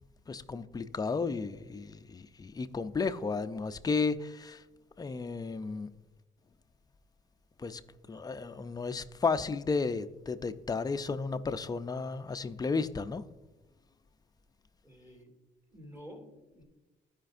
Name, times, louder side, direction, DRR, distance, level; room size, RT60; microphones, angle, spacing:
voice 1, 0.3-4.6 5.0-6.0 7.6-7.8 8.1-13.3, left 4 dB, 20° left, 0.4 m, -33 dB
voice 2, 14.8-15.4 15.7-16.6, equal, 10° right, 2.3 m, -50 dB
14.5 x 5.1 x 2.5 m
cardioid pair, 90°, 20 cm